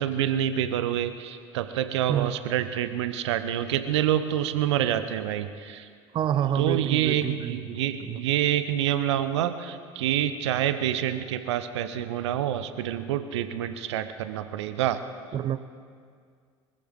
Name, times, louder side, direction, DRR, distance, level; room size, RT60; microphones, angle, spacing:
voice 1, 0.0-5.9 6.5-15.0, right 11 dB, 65° right, 0.8 m, -27 dB
voice 2, 6.1-8.2 15.3-15.7, right 10 dB, 30° right, 0.5 m, -28 dB
24.0 x 14.5 x 3.8 m
figure-of-eight pair, 70°, 16 cm